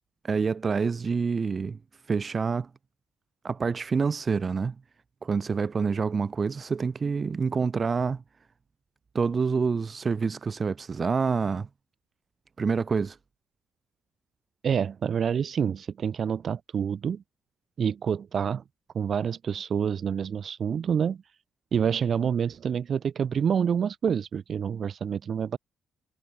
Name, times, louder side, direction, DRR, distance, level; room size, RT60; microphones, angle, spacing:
voice 1, 0.2-1.8 2.1-2.7 3.4-4.8 5.2-8.2 9.1-11.7 12.6-13.2, right 5 dB, 35° right, 7.5 m, -27 dB
voice 2, 14.6-17.2 17.8-18.6 18.9-21.2 21.7-25.6, right 7 dB, 50° right, 5.5 m, -27 dB
cardioid pair, 90°, 0 cm